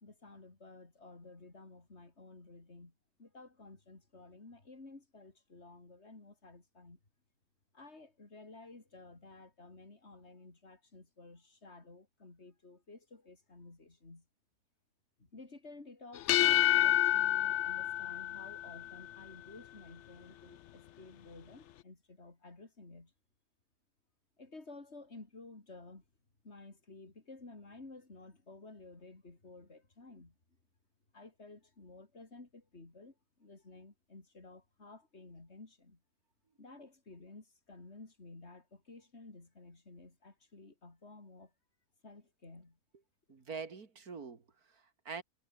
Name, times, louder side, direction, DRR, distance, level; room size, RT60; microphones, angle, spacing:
voice 1, 0.0-2.9 3.2-7.0 7.7-14.2 15.2-23.1 24.4-26.0 26.4-30.3 31.1-33.1 33.4-36.0 36.6-41.5 42.0-42.8, left 3 dB, 40° left, 3.8 m, -53 dB
sound 1, 16.1-19.0, left 12 dB, 65° left, 0.7 m, -28 dB
voice 2, 43.3-45.2, right 5 dB, 70° right, 2.8 m, -45 dB
omnidirectional pair, 1.7 m